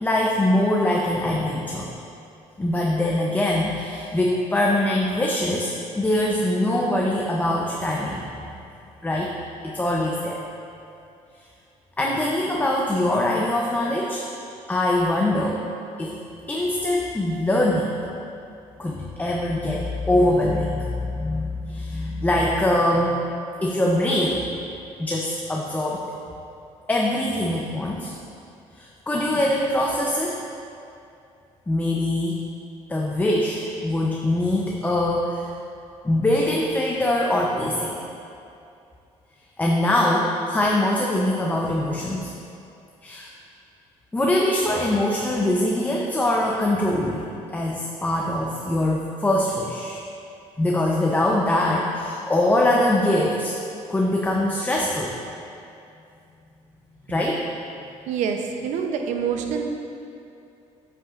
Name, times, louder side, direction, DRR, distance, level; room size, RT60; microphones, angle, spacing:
voice 1, 0.0-1.9 2.6-8.5 9.0-9.3 9.6-10.4 12.0-14.2 14.7-15.6 16.0-16.1 16.5-17.9 18.8-23.3 23.6-24.5 25.0-26.2 26.9-28.1 28.8-30.4 31.7-32.4 32.9-35.5 36.0-38.0 39.6-42.3 43.0-43.3 44.1-47.3 47.5-50.0 50.6-53.6 53.9-55.1 57.1-57.4, left 1 dB, 15° left, -2 dB, 0.7 m, -23 dB
voice 2, 58.1-59.6, right 7 dB, 75° right, 4 dB, 0.7 m, -26 dB
8.4 x 7.9 x 2.5 m, 2.6 s
cardioid pair, 100°, 12 cm